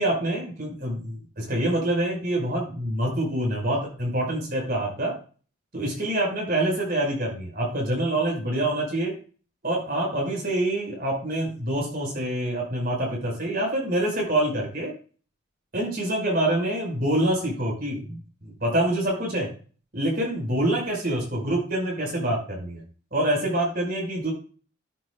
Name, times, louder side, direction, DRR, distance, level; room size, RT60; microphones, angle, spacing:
voice 1, 0.0-5.1 5.7-9.1 9.6-14.9 15.7-19.5 19.9-22.8 23.1-24.3, right 1 dB, 50° right, -2 dB, 5.5 m, -26 dB
14.0 x 8.0 x 2.5 m, 0.37 s
head